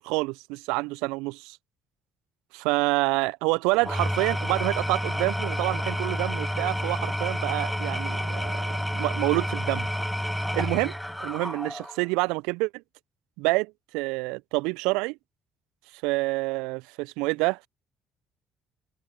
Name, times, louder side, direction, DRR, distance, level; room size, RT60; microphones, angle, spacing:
voice 1, 0.0-1.6 2.5-9.9 10.5-12.8 13.4-15.2 16.0-17.7, right 25 dB, 70° right, 0.9 m, -27 dB
Engine / Tools, 3.7-12.1, equal, ahead, 1.2 m, -30 dB
figure-of-eight pair, 50°, 0 cm